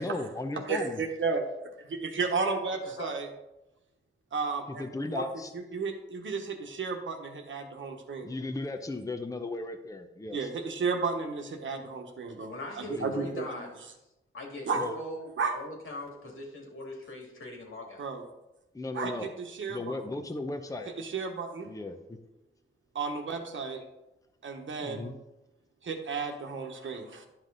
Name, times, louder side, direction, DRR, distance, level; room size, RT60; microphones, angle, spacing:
voice 1, 0.0-1.0 4.7-5.5 8.2-10.5 12.8-13.3 14.8-15.0 18.7-19.3 19.7-20.9 21.7-22.2 24.8-25.1, left 2 dB, 15° left, 7 dB, 0.7 m, -36 dB
voice 2, 0.7-1.4 1.8-3.3 4.3-5.3 5.5-8.3 10.3-13.6 14.7-14.8 15.4-15.5 18.0-18.2 18.9-20.0 21.0-21.7 22.9-23.8 24.4-25.2 25.8-27.3, right 4 dB, 65° right, 4 dB, 1.2 m, -33 dB
voice 3, 12.5-13.7 14.3-18.1, left 1 dB, 75° left, 0 dB, 2.3 m, -41 dB
11.0 x 5.8 x 3.9 m, 0.94 s
cardioid pair, 80°, 21 cm